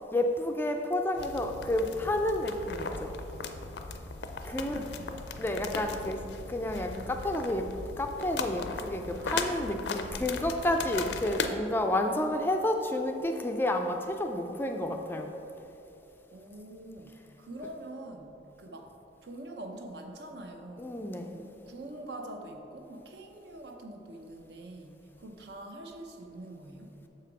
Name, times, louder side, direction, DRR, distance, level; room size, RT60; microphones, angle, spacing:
voice 1, 0.1-3.2 4.4-4.8 5.4-6.2 6.5-7.7 8.0-15.3 20.8-21.4, left 1 dB, 10° left, 4 dB, 0.3 m, -30 dB
sound 1, 1.2-11.5, left 4 dB, 75° left, 0.5 m, -38 dB
voice 2, 4.4-5.2 9.1-9.9 16.3-18.3 18.6-18.9 19.2-20.9 21.3-26.9, right 1 dB, 65° right, 3 dB, 0.7 m, -45 dB
6.7 x 5.7 x 4.7 m, 2.9 s
head